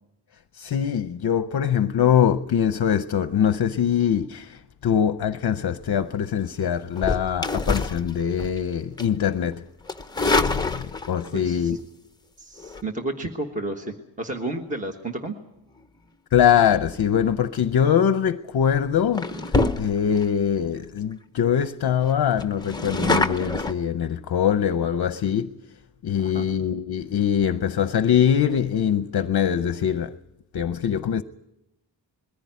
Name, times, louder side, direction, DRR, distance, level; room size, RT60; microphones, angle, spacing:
voice 1, 0.5-9.6 10.4-11.8 16.3-25.6 26.0-30.1 30.5-31.2, left 8 dB, 55° left, 0.7 m, -23 dB
sound 1, 6.9-8.6 9.0-9.2 9.9-11.3 12.6-12.8 17.8-18.1 18.6-18.8 19.1-20.2 20.8-20.9 21.1-21.2 21.5-21.6 22.0-23.7, left 3 dB, 10° left, 0.7 m, -26 dB
voice 2, 11.3-11.8 12.4-15.3 26.2-26.5, right 2 dB, 15° right, 1.3 m, -32 dB
22.0 x 15.0 x 9.4 m
wide cardioid pair, 175°, 47 cm